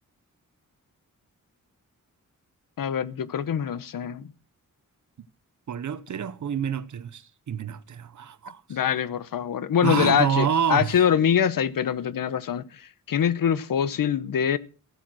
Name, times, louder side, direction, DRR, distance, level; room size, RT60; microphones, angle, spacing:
voice 1, 2.8-4.2 8.7-12.6 13.1-14.6, left 8 dB, 80° left, 1.0 m, -24 dB
voice 2, 5.7-8.8 9.8-10.9, right 8 dB, 60° right, 0.9 m, -28 dB
15.5 x 8.7 x 6.2 m
wide cardioid pair, 170°, 33 cm